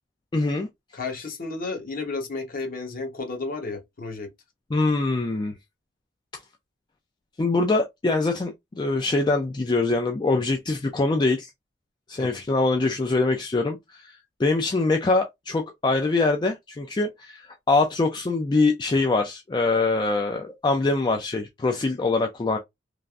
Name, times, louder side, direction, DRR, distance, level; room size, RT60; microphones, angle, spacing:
voice 1, 0.3-0.7 4.7-5.5 7.4-11.5 12.1-14.1 14.4-22.6, left 3 dB, 20° left, 0.3 m, -23 dB
voice 2, 0.9-4.3 12.2-12.4, left 3 dB, 45° left, 0.9 m, -32 dB
3.2 x 2.5 x 2.3 m
head